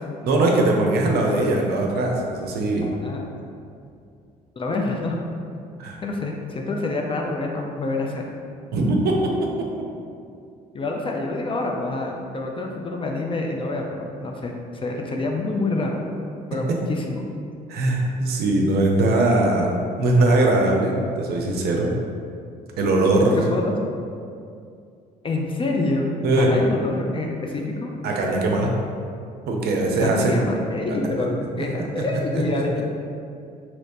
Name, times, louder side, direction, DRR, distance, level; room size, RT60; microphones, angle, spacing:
voice 1, 0.2-2.9 5.8-6.0 8.7-9.7 17.7-19.7 20.0-21.9 22.8-23.4 26.2-26.5 28.0-28.7 29.5-30.5 31.6-31.7 32.0-32.1 32.3-32.6, right 2 dB, 50° right, 0 dB, 0.5 m, -21 dB
voice 2, 2.8-3.3 4.6-5.2 6.0-8.2 10.7-14.5 14.8-16.0 16.5-17.3 23.5-23.7 25.2-27.9 30.0-32.8, left 2 dB, 25° left, 0 dB, 0.4 m, -27 dB
3.1 x 2.9 x 2.6 m, 2.4 s
figure-of-eight pair, 50°, 21 cm